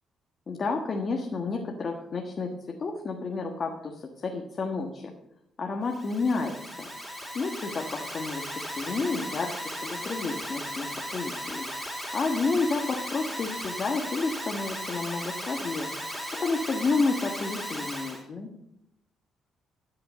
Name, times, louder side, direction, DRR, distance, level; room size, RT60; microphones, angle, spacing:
voice 1, 0.5-2.5 2.8-5.1 5.6-6.9 7.3-8.4 8.8-11.6 12.1-15.9 16.4-18.5, left 3 dB, 45° left, 1 dB, 1.4 m, -30 dB
Alarm, 5.9-18.2, equal, 5° left, 3.8 m, -36 dB
14.0 x 5.7 x 6.7 m, 0.81 s
cardioid pair, 90°, 0 cm